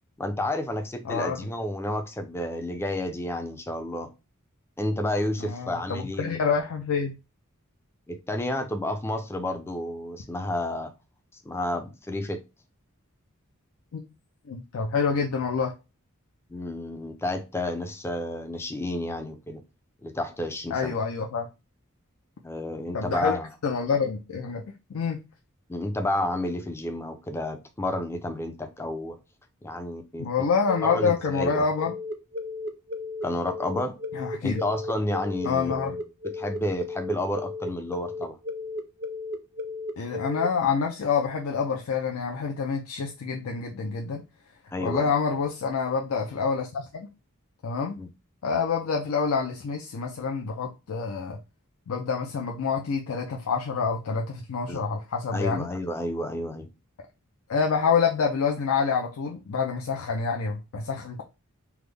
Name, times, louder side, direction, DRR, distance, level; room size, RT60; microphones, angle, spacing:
voice 1, 0.2-4.1 4.8-6.4 8.1-10.9 11.3-12.4 16.5-19.6 20.0-21.0 22.4-23.5 25.7-29.2 29.6-30.3 30.8-31.7 33.2-34.0 34.4-38.4 44.7-45.1 48.0-48.1 54.7-54.8 55.3-56.7, left 1 dB, 10° left, 0.4 m, -31 dB
voice 2, 1.1-1.4 5.4-7.2 13.9-14.0 14.5-15.7 20.7-21.5 22.9-23.4 23.6-24.6 24.9-25.2 30.2-31.9 34.1-34.6 35.4-35.9 40.0-44.2 44.8-47.1 47.6-48.0 48.4-51.4 51.9-55.7 57.5-61.2, left 5 dB, 70° left, 0.4 m, -27 dB
sound 1, 30.7-40.5, left 2 dB, 50° right, 0.5 m, -34 dB
3.5 x 2.0 x 3.2 m
head